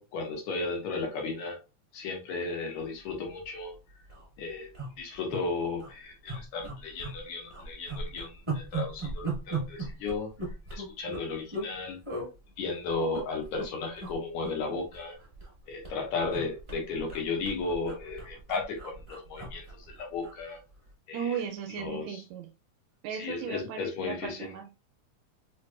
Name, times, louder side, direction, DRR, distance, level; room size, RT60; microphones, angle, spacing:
voice 1, 0.0-1.6 1.9-3.7 4.4-10.3 10.7-12.0 12.6-15.2 15.7-20.6 21.1-21.4 21.8-22.2 23.1-24.5, left 3 dB, 80° left, 2.4 m, -34 dB
sound 1, 3.3-3.4 3.7-3.8 4.0-4.3 4.7-5.4 5.8-5.9 6.3-7.2 7.5-11.7 12.0-12.3 12.9-13.7 14.0-14.1 14.4-15.6 15.8-20.4 20.7-20.9, right 3 dB, 55° right, 0.3 m, -37 dB
voice 2, 21.1-22.5 23.0-24.7, right 8 dB, 80° right, 1.6 m, -36 dB
5.1 x 2.7 x 2.3 m
omnidirectional pair, 3.4 m